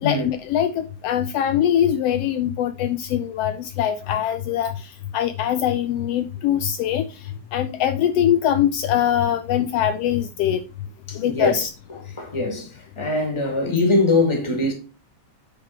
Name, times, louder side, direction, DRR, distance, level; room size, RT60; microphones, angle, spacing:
voice 1, 0.0-4.7 5.1-7.0 7.5-10.6 11.1-11.7, left 10 dB, 90° left, 1.3 m, -22 dB
voice 2, 11.1-11.7 12.0-14.7, left 2 dB, 10° left, 1.6 m, -22 dB
9.5 x 3.9 x 4.4 m
omnidirectional pair, 3.4 m